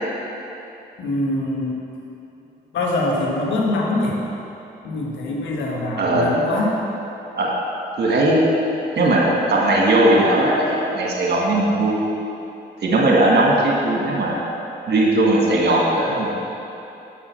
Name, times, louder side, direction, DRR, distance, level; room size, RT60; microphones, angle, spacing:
voice 1, 1.0-1.8 2.7-4.2 4.8-6.8, left 2 dB, 75° left, -2 dB, 1.3 m, -23 dB
voice 2, 6.0-6.3 7.4-7.5 8.0-8.4 9.0-9.2 9.5-12.0 12.8-14.4 14.9-16.4, right 1 dB, 60° right, -3 dB, 1.7 m, -18 dB
6.1 x 6.1 x 5.7 m, 2.9 s
supercardioid pair, 55°, 19 cm